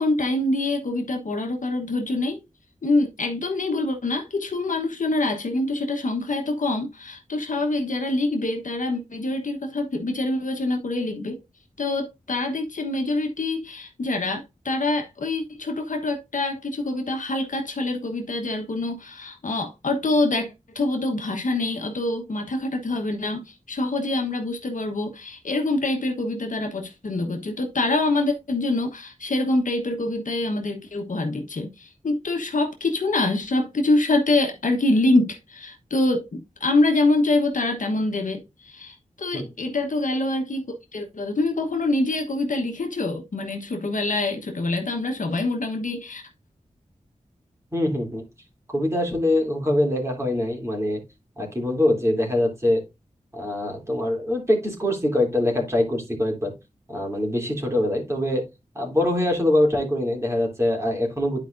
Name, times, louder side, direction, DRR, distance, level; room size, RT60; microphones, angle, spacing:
voice 1, 0.0-2.4 2.8-11.4 11.8-46.2, left 2 dB, 70° left, 1.2 m, -25 dB
voice 2, 47.7-48.2 48.7-51.0 51.4-52.8 53.3-56.5 56.9-58.4 58.7-61.4, left 1 dB, 20° right, 3.0 m, -23 dB
11.0 x 4.8 x 2.6 m
wide cardioid pair, 70°, 14 cm